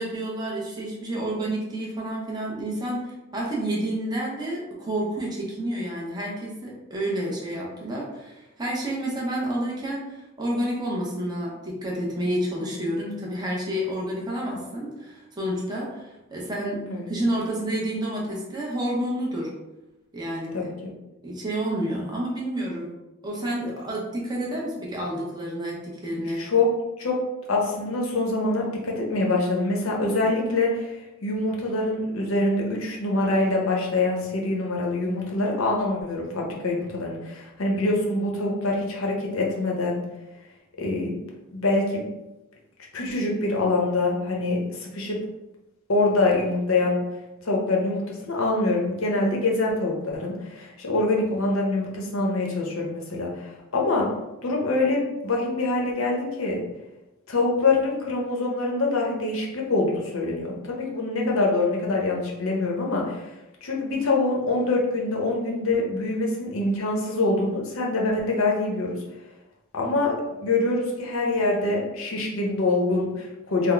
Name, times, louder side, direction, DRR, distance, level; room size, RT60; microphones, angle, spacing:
voice 1, 0.0-19.5 20.1-20.7 21.2-22.9 23.2-26.4, right 1 dB, 20° right, -4 dB, 0.7 m, -29 dB
voice 2, 26.3-26.7 27.0-27.2 27.5-40.0 40.8-41.1 41.5-42.1 42.9-45.2 45.9-47.0 47.4-54.1 54.4-56.6 57.3-69.0 69.7-70.1 70.4-73.7, left 2 dB, 80° left, -1 dB, 0.8 m, -25 dB
3.6 x 2.0 x 3.3 m, 0.99 s
head